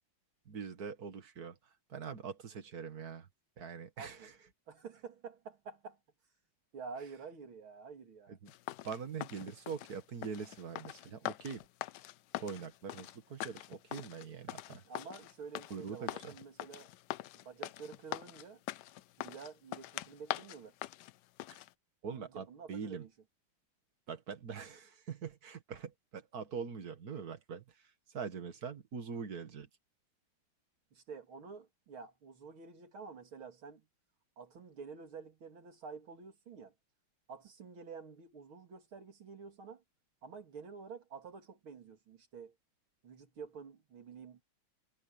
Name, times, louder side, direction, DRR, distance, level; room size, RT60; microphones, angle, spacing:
voice 1, 0.5-3.3 3.6-4.3 8.3-8.4 8.8-11.6 12.4-14.8 15.7-16.3 21.5-21.6 22.0-23.0 24.1-27.8 28.1-29.7, right 6 dB, 50° right, 2.3 m, -43 dB
voice 2, 4.0-4.3 4.7-6.0 6.7-8.4 14.9-16.9 17.4-18.6 19.2-20.8 22.1-23.1 30.9-33.9 34.4-36.7 37.3-39.8 40.2-42.6 43.0-44.4, right 5 dB, 85° right, 3.5 m, -49 dB
sound 1, 8.5-21.7, left 15 dB, 75° left, 1.0 m, -43 dB
omnidirectional pair, 2.2 m